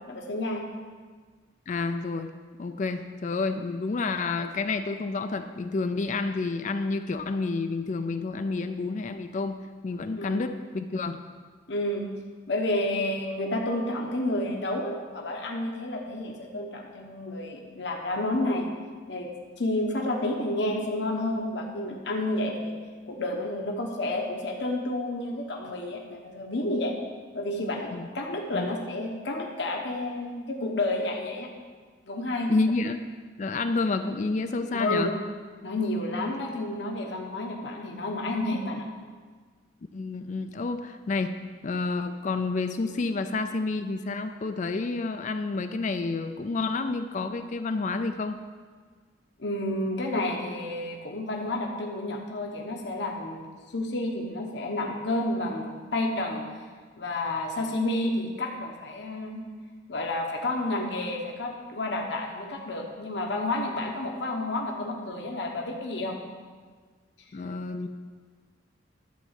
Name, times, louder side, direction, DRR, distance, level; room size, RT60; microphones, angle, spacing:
voice 1, 0.1-0.6 10.2-10.4 11.7-12.1 12.5-18.7 19.1-19.3 19.6-22.7 23.1-26.9 27.3-31.5 32.1-32.5 34.7-35.2 35.6-38.8 49.4-53.4 53.7-56.4 57.0-59.4 59.9-66.2, left 1 dB, 65° left, 1 dB, 1.0 m, -30 dB
voice 2, 1.7-2.3 2.6-11.2 27.9-28.1 28.5-28.7 32.5-33.0 33.4-35.1 39.9-41.3 41.6-48.4 67.3-67.9, left 3 dB, 40° left, 8 dB, 0.4 m, -29 dB
11.5 x 4.0 x 7.3 m, 1.5 s
head